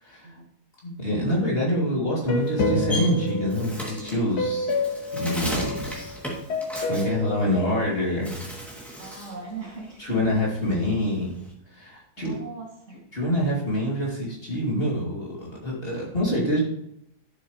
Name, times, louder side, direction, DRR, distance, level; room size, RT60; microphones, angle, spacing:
voice 1, 0.8-4.7 5.2-6.2 6.9-8.4 10.0-11.3 11.7-12.4 13.1-16.6, equal, 35° left, -4 dB, 2.9 m, -26 dB
sound 1, 2.3-6.1 6.5-8.5, left 2 dB, 75° left, 1.8 m, -29 dB
Bird, 2.4-7.8 8.2-9.4 9.8-11.5, equal, ahead, 2.4 m, -36 dB
voice 2, 9.0-10.4 12.2-13.0, right 4 dB, 45° right, -2 dB, 2.6 m, -39 dB
11.5 x 7.3 x 3.1 m, 0.76 s
omnidirectional pair, 1.8 m